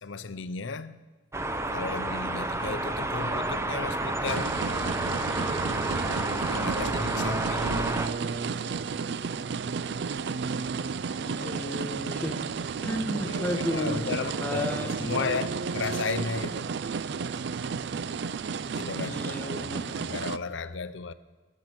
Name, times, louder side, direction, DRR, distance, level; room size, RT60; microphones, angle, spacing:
voice 1, 0.0-1.0 1.7-4.6 6.5-7.9 13.2-16.7 18.7-21.1, left 4 dB, 80° left, 0.7 m, -34 dB
sound 1, 1.3-8.1, right 2 dB, 15° right, 0.7 m, -30 dB
sound 2, 4.2-20.4, right 5 dB, 60° right, 0.4 m, -32 dB
voice 2, 11.1-12.4 12.8-15.3 19.0-19.8, left 1 dB, 10° left, 1.1 m, -33 dB
21.5 x 7.5 x 6.1 m
head